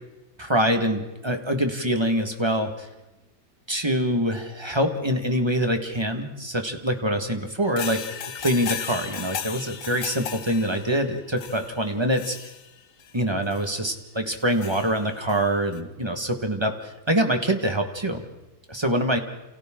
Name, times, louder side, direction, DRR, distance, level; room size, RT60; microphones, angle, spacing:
voice 1, 0.4-2.9 3.7-8.0 8.3-12.4 13.1-18.2 18.7-19.2, equal, 15° right, 5 dB, 1.6 m, -25 dB
sound 1, 7.7-13.1 13.5-13.7 14.3-15.4 15.7-15.8, left 8 dB, 70° left, 1.7 m, -35 dB
29.0 x 28.5 x 3.8 m, 1.0 s
omnidirectional pair, 2.1 m